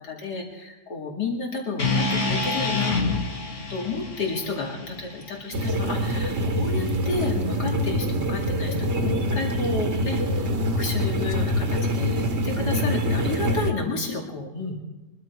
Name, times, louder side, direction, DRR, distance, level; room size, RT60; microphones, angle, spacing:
voice 1, 0.0-3.0 3.7-10.5 10.7-14.8, left 3 dB, 85° left, -1 dB, 3.1 m, -31 dB
sound 1, 1.8-6.0, left 3 dB, 50° left, 2.0 m, -28 dB
sound 2, 5.5-13.7, equal, 45° right, 1.4 m, -25 dB
23.0 x 12.0 x 4.7 m, 1.0 s
omnidirectional pair, 1.7 m